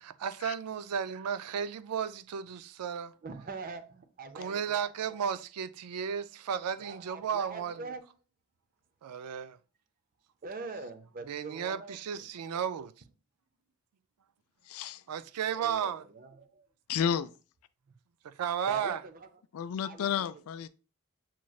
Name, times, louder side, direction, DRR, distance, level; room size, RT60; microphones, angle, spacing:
voice 1, 0.0-3.1 4.3-7.8 9.0-9.6 11.3-12.9 15.1-16.0 18.4-19.0, right 7 dB, 90° right, 0.4 m, -34 dB
voice 2, 3.2-5.1 6.8-8.0 10.4-12.3 15.5-16.7 17.9-18.0 18.7-19.3 19.8-20.3, right 4 dB, 40° right, 0.6 m, -44 dB
voice 3, 14.7-15.0 16.9-17.3 19.5-20.7, left 8 dB, 70° left, 0.3 m, -31 dB
7.2 x 3.1 x 2.3 m
head